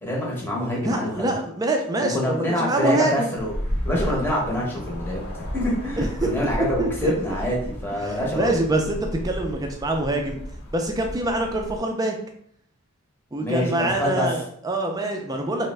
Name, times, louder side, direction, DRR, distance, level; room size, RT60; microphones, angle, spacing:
voice 1, 0.0-1.2 2.0-3.5 3.8-8.5 13.4-14.3, left 1 dB, 10° left, -4 dB, 0.8 m, -26 dB
voice 2, 0.7-3.3 4.0-4.1 6.0-6.3 6.8-7.1 8.0-10.4 10.7-12.1 13.3-15.7, right 2 dB, 15° right, 3 dB, 0.3 m, -25 dB
sound 1, 3.4-11.8, equal, 45° left, 0.9 m, -33 dB
3.3 x 2.1 x 3.2 m, 0.65 s
head